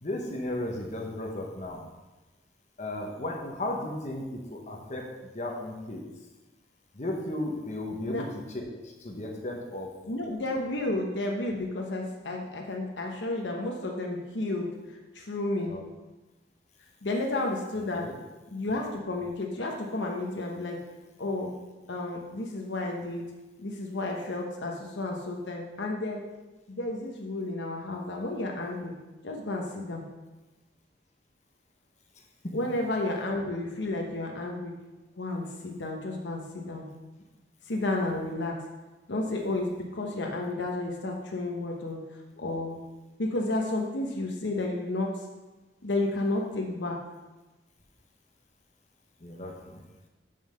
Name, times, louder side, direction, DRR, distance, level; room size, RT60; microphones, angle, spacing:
voice 1, 0.0-1.8 2.8-6.0 6.9-9.9 15.7-15.8 17.7-18.2 32.4-32.6 49.2-49.8, left 1 dB, 40° left, 1 dB, 1.0 m, -35 dB
voice 2, 10.1-14.7 15.1-15.8 17.0-18.1 18.5-20.8 21.2-21.5 21.9-23.2 23.6-26.2 26.7-28.9 29.2-30.0 32.5-34.7 35.2-36.9 37.7-38.6 39.1-42.0 42.4-42.8 43.2-45.1 45.8-47.0, left 2 dB, 75° left, 0 dB, 1.0 m, -31 dB
5.6 x 5.4 x 6.5 m, 1.1 s
head